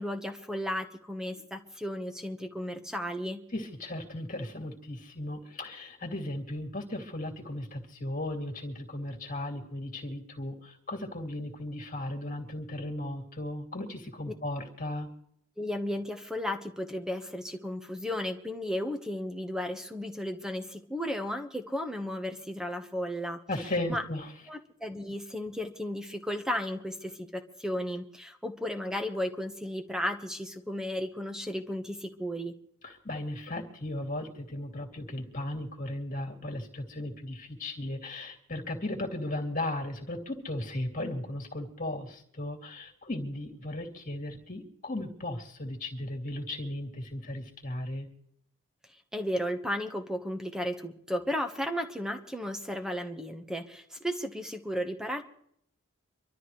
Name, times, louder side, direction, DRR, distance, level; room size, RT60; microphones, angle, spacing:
voice 1, 0.0-3.4 15.6-23.4 23.9-24.0 24.5-32.5 49.1-55.2, equal, 5° right, 6 dB, 1.2 m, -34 dB
voice 2, 3.5-15.1 23.5-24.3 32.8-48.1, left 1 dB, 40° left, 2 dB, 2.6 m, -36 dB
25.5 x 13.0 x 3.2 m, 0.69 s
head